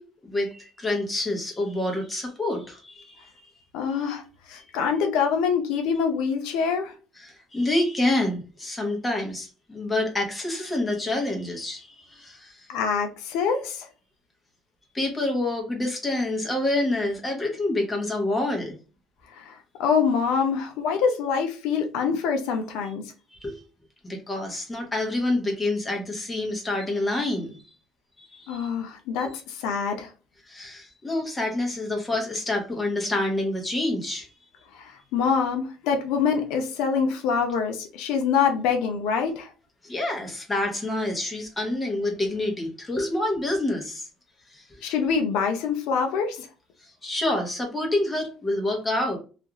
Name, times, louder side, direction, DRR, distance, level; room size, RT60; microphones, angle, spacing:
voice 1, 0.0-3.5 7.2-12.7 14.9-18.8 23.3-23.6 24.0-27.7 28.2-28.7 29.2-29.3 30.5-34.3 39.8-44.1 44.5-44.9 47.0-49.2, left 2 dB, 10° left, 0.8 m, -27 dB
voice 2, 3.7-6.9 12.7-13.9 19.3-23.1 28.5-30.1 34.7-39.5 44.8-46.5, left 6 dB, 85° left, 0.5 m, -25 dB
2.5 x 2.3 x 2.9 m
cardioid pair, 150°, 0 cm